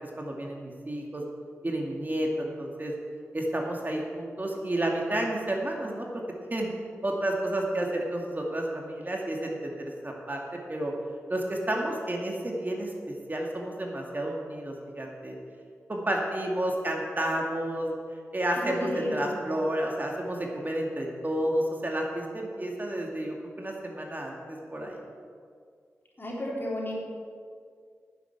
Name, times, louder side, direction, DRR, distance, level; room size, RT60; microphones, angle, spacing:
voice 1, 0.2-1.2 1.6-2.9 3.3-6.2 6.5-6.7 7.0-10.4 10.7-10.9 11.3-15.4 15.9-18.0 18.3-25.0, right 1 dB, 35° right, 0 dB, 2.4 m, -31 dB
voice 2, 18.6-19.4 26.2-27.0, left 1 dB, 40° left, -3 dB, 3.8 m, -32 dB
9.8 x 8.1 x 8.5 m, 2.1 s
cardioid pair, 40°, 5 cm